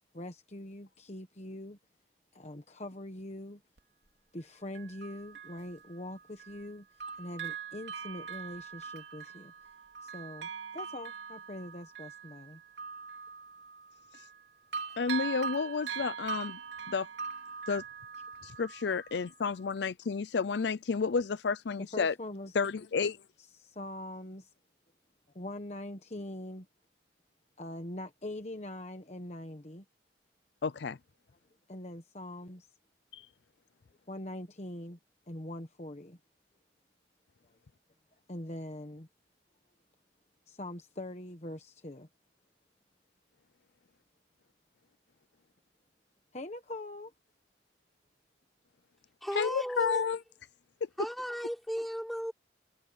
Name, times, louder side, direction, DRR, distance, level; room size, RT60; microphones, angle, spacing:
voice 1, 0.1-1.8 2.3-3.6 4.3-6.9 7.2-9.5 10.0-12.6 21.9-22.6 23.6-24.5 25.3-26.7 27.6-29.8 31.7-32.7 34.1-35.0 35.3-36.2 37.5-37.6 38.3-39.1 40.5-42.1 46.3-47.1, left 1 dB, 35° left, 1.2 m, -43 dB
Bell, 3.8-3.9 4.7-6.7 7.0-14.4 14.7-19.3 19.8-19.9, right 6 dB, 70° right, 2.9 m, -42 dB
voice 2, 15.0-16.6 16.9-17.1 17.7-17.8 18.4-22.1 22.5-23.2 30.6-31.0 33.1-33.2 49.3-50.2, left 5 dB, 70° left, 0.5 m, -31 dB
voice 3, 49.2-50.0 51.0-52.3, equal, ahead, 5.8 m, -35 dB
head